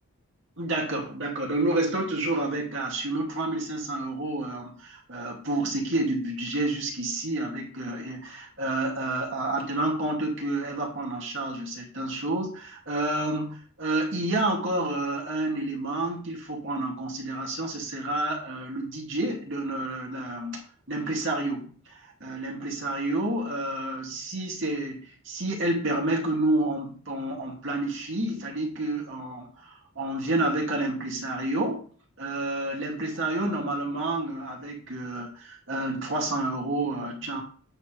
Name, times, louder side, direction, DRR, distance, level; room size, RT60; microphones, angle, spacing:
voice 1, 0.6-31.9 32.2-37.4, right 2 dB, 60° right, 2.4 m, -29 dB
9.0 x 4.3 x 5.1 m
head